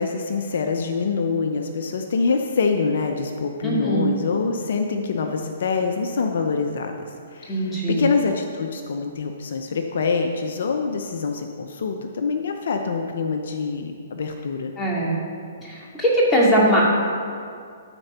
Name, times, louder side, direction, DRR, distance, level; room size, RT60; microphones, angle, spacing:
voice 1, 0.0-14.7, left 4 dB, 65° left, 5 dB, 0.7 m, -25 dB
voice 2, 3.6-4.1 7.5-8.0 14.8-15.2 15.6-16.8, right 1 dB, 10° left, -5 dB, 2.3 m, -20 dB
13.0 x 4.5 x 5.5 m, 2.3 s
hypercardioid pair, 135°, 0 cm